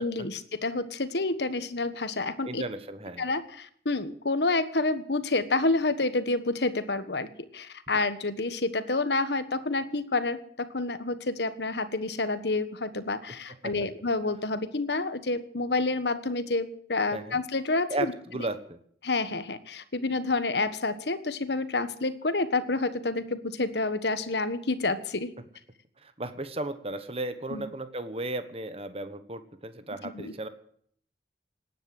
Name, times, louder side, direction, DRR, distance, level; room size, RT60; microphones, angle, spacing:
voice 1, 0.0-2.6 3.2-7.3 7.5-18.1 19.0-25.3 27.5-27.7 30.0-30.3, left 3 dB, 70° left, 12 dB, 1.4 m, -29 dB
voice 2, 2.5-3.3 13.6-13.7 17.1-17.4 17.9-18.8 26.0-30.5, right 2 dB, 35° right, 10 dB, 1.3 m, -35 dB
18.5 x 9.9 x 7.9 m, 0.62 s
head